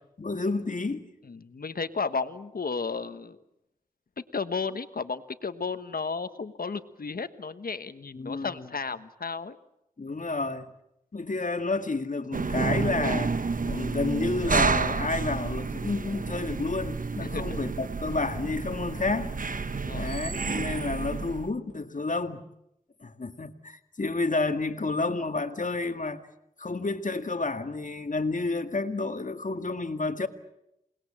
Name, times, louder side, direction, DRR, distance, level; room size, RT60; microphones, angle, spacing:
voice 1, 0.2-1.1 8.1-8.7 10.0-10.7 11.1-19.3 19.9-22.4 23.0-26.2 26.6-30.3, left 3 dB, 60° left, 2.0 m, -30 dB
voice 2, 1.3-3.4 4.2-9.6 17.2-17.6 19.7-20.1, left 4 dB, 85° left, 1.3 m, -33 dB
sound 1, 12.3-21.5, right 4 dB, 65° right, 1.1 m, -30 dB
28.0 x 20.0 x 8.7 m
wide cardioid pair, 45°, 15 cm